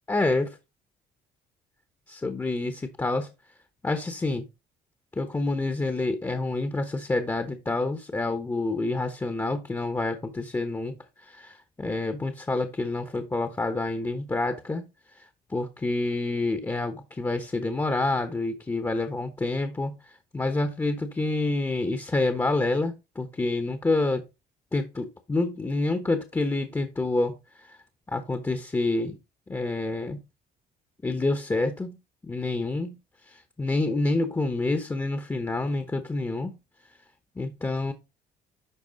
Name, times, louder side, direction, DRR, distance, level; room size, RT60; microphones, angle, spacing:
voice 1, 0.1-0.5 2.1-3.3 3.8-4.5 5.2-10.9 11.3-14.8 15.5-19.9 20.3-24.2 24.7-27.4 28.1-29.2 29.5-30.2 31.0-32.0 32.2-33.0 33.6-36.6 37.4-37.9, left 2 dB, 15° left, 1.1 m, -27 dB
11.5 x 4.2 x 4.0 m
cardioid pair, 110°, 17 cm